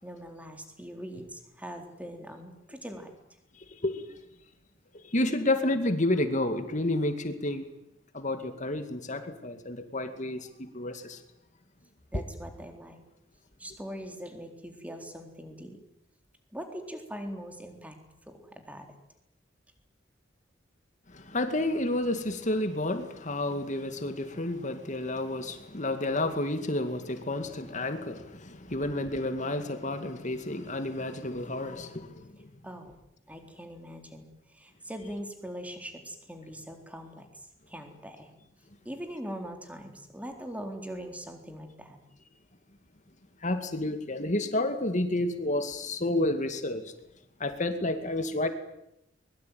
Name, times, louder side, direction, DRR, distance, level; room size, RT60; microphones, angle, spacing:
voice 1, 0.0-3.1 12.1-13.0 13.6-15.8 16.5-18.0 18.3-18.9 32.6-32.9 33.3-34.3 34.5-37.2 37.7-38.3 38.8-42.0, equal, 10° right, 4 dB, 4.0 m, -41 dB
voice 2, 5.1-7.6 8.1-11.2 12.1-12.2 21.1-32.5 43.4-46.8 47.4-48.5, left 1 dB, 40° left, 8 dB, 2.3 m, -30 dB
23.0 x 22.0 x 9.4 m, 0.81 s
head